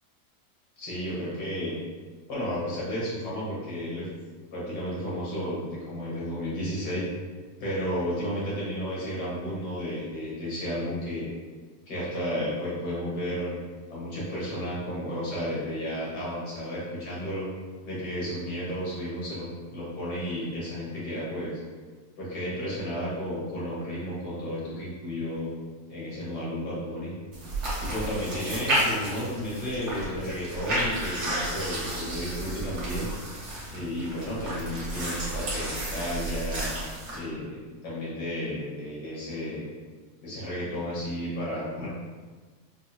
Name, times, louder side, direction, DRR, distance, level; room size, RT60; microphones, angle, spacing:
voice 1, 0.8-1.7 2.3-4.1 4.5-7.0 7.6-11.3 11.9-13.6 13.9-17.5 17.8-21.6 22.2-25.5 25.9-27.1 27.8-33.1 33.7-36.7 37.1-39.7 40.2-41.9, equal, 85° left, -8 dB, 1.9 m, -32 dB
sound 1, 27.3-37.2, right 1 dB, 50° right, 1.3 m, -32 dB
4.7 x 2.7 x 2.3 m, 1.4 s
omnidirectional pair, 1.7 m